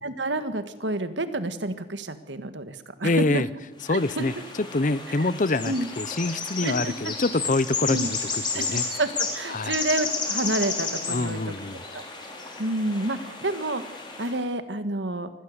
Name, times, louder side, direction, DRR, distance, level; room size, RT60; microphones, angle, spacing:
voice 1, 0.0-3.4 3.9-4.2 5.2-5.3 5.6-5.9 6.6-7.1 7.9-8.1 8.5-11.5 11.9-12.0 12.6-13.8 14.2-15.3, right 2 dB, 70° right, 1.7 m, -29 dB
voice 2, 3.0-3.5 3.9-4.3 4.7-8.2 8.5-8.8 9.5-9.8 11.1-11.8, left 2 dB, 40° left, 0.7 m, -25 dB
sound 1, 3.8-14.4, left 4 dB, 25° left, 3.8 m, -32 dB
24.5 x 15.5 x 8.1 m
head